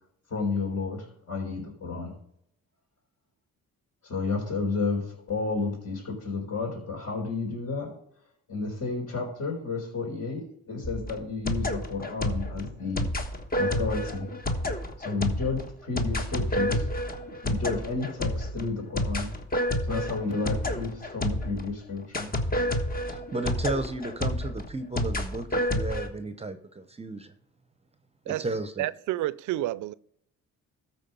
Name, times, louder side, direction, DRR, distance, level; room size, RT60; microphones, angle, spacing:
voice 1, 0.3-2.1 4.0-7.9 8.5-13.1 13.6-14.3 15.0-16.8 17.4-19.3 19.9-22.3, left 3 dB, 55° left, 4.2 m, -31 dB
sound 1, 10.8-21.7 22.1-26.1, left 1 dB, 30° left, 1.3 m, -30 dB
voice 2, 23.1-27.3 28.3-28.9, right 2 dB, 20° right, 0.7 m, -34 dB
voice 3, 28.8-29.9, right 15 dB, 75° right, 0.4 m, -29 dB
13.5 x 4.5 x 5.4 m
cardioid pair, 90°, 30 cm